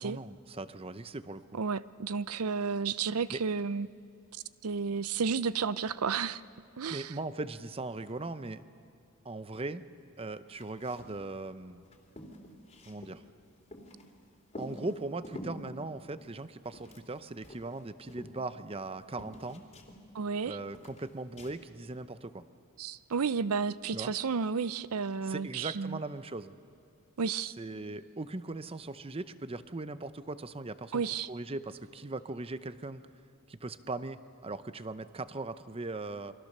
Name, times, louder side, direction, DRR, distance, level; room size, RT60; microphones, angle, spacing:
voice 1, 0.0-1.4 3.3-3.4 6.9-8.6 9.2-9.8 10.2-11.8 12.8-13.2 14.6-19.6 20.5-22.4 23.9-24.1 25.2-26.5 27.6-31.0 31.3-33.0 33.5-36.3, right 2 dB, 25° right, 12 dB, 0.7 m, -39 dB
voice 2, 1.5-3.9 4.6-6.4 6.8-7.1 20.1-20.6 22.8-26.0 27.2-27.5 30.9-31.3, right 5 dB, 80° right, 17 dB, 0.6 m, -32 dB
sound 1, 10.5-11.2 11.5-11.6 11.8-14.1 14.5-15.6 16.2-17.2 17.4-18.9 19.2-20.4 20.7-21.6, left 1 dB, 30° left, 2.9 m, -47 dB
28.5 x 23.5 x 6.7 m, 2.6 s
head